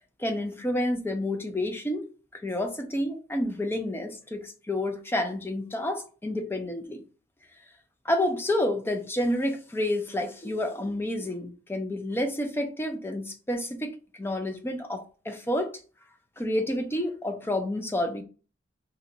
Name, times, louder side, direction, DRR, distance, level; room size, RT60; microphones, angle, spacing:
voice 1, 0.2-2.1 2.3-7.0 8.0-13.9 14.2-15.8 16.4-18.2, left 1 dB, 10° left, 0.4 m, -29 dB
2.9 x 2.2 x 3.8 m
head